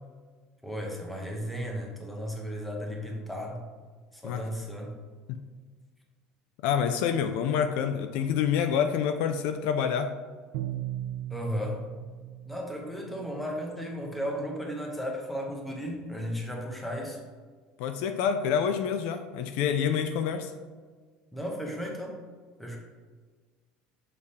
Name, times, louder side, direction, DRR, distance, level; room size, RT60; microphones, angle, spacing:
voice 1, 0.6-3.6 4.1-4.9 11.3-11.8 12.4-17.2 21.3-22.2 22.6-22.8, equal, 5° left, 0 dB, 0.8 m, -35 dB
voice 2, 6.6-10.1 17.8-20.5, left 7 dB, 60° left, 8 dB, 0.4 m, -27 dB
Bowed string instrument, 10.5-13.4, right 13 dB, 65° right, 0.4 m, -37 dB
6.6 x 3.6 x 4.2 m, 1.5 s
cardioid pair, 175°, 3 cm